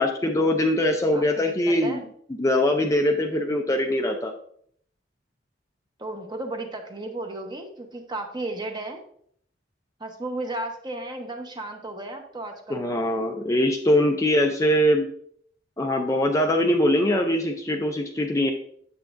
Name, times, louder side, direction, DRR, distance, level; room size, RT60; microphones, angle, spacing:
voice 1, 0.0-2.0 2.4-4.3 12.7-15.1 15.8-18.5, left 1 dB, 15° left, 3 dB, 0.5 m, -22 dB
voice 2, 1.1-2.1 6.0-9.0 10.0-12.9, right 2 dB, 25° right, 4 dB, 1.0 m, -34 dB
8.2 x 7.3 x 2.6 m, 0.64 s
head